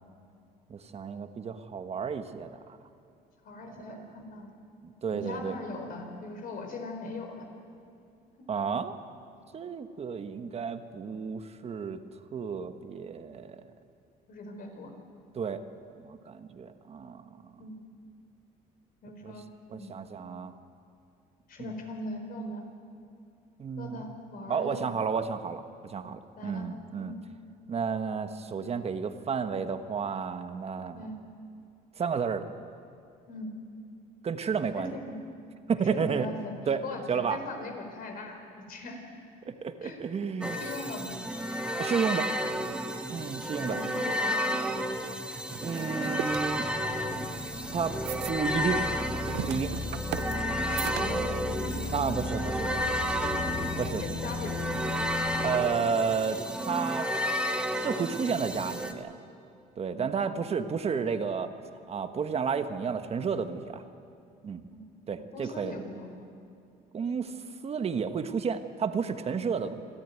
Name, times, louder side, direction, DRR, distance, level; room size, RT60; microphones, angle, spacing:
voice 1, 0.7-2.8 3.7-4.0 4.8-5.5 8.5-9.0 9.5-12.0 12.3-13.6 15.3-15.6 16.0-17.5 19.2-19.3 19.7-20.6 21.6-21.7 23.6-24.0 24.5-27.1 27.7-31.0 32.0-32.5 34.2-35.0 35.7-36.3 36.7-36.8 37.1-37.4 39.4-40.6 41.8-42.3 43.1-43.8 45.6-46.7 47.7-48.0 48.3-48.9 49.5-49.7 51.9-53.0 53.8-54.0 55.4-59.1 59.8-61.5 61.9-63.8 64.4-64.6 65.1-65.8 66.9-69.8, right 6 dB, 35° right, 9 dB, 1.3 m, -32 dB
voice 2, 3.4-4.5 5.1-7.5 14.3-14.9 17.6-17.8 19.0-19.5 19.7-19.9 21.5-22.6 23.8-24.8 26.4-26.7 27.0-27.2 30.9-31.2 33.3-33.5 34.8-35.1 35.7-36.5 36.8-38.4 38.7-39.0 39.8-40.0 40.5-41.2 42.5-42.6 43.0-43.2 43.6-44.8 50.1-50.3 50.7-51.2 51.6-51.8 53.2-53.7 54.0-54.8 59.9-60.1 64.7-64.9 65.3-66.3, left 2 dB, 60° left, 4 dB, 4.3 m, -40 dB
sound 1, 40.4-58.9, equal, 5° right, 1.5 m, -32 dB
sound 2, 44.2-51.5, right 15 dB, 85° right, 0.6 m, -41 dB
sound 3, 46.3-55.6, left 3 dB, 35° left, 5.0 m, -36 dB
26.5 x 13.0 x 9.4 m, 2.5 s
cardioid pair, 110°, 17 cm